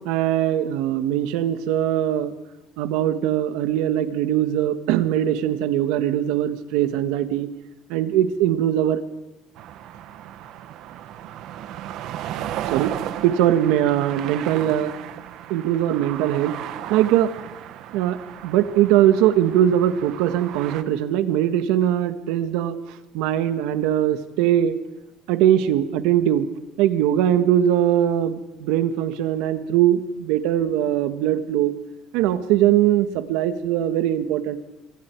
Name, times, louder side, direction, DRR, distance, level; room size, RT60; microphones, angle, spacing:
voice 1, 0.0-2.3 2.8-7.5 7.9-9.0 12.7-12.9 13.2-14.9 15.5-16.5 16.9-17.3 17.9-18.2 18.4-22.8 23.1-24.8 25.3-26.5 26.8-31.7 32.1-34.6, right 11 dB, 80° right, 9 dB, 1.6 m, -21 dB
sound 1, 9.6-20.8, right 11 dB, 55° right, 1.2 m, -35 dB
26.5 x 25.0 x 4.7 m, 1.1 s
cardioid pair, 170°, 0 cm